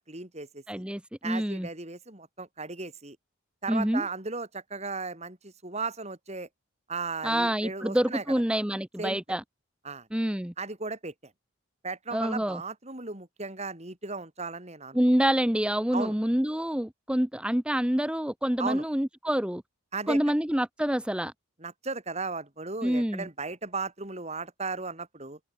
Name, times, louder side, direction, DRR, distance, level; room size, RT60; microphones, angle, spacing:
voice 1, 0.0-0.8 1.2-3.2 3.6-6.5 6.9-8.2 9.0-9.2 9.8-10.1 10.6-11.1 11.8-15.0 15.9-16.1 18.6-18.8 19.9-20.2 21.6-25.4, right 3 dB, 30° right, 3.5 m, -36 dB
voice 2, 0.7-1.7 3.7-4.0 7.2-9.4 10.1-10.5 12.1-12.6 14.9-19.6 20.1-21.3 22.8-23.3, equal, 5° right, 0.8 m, -27 dB
head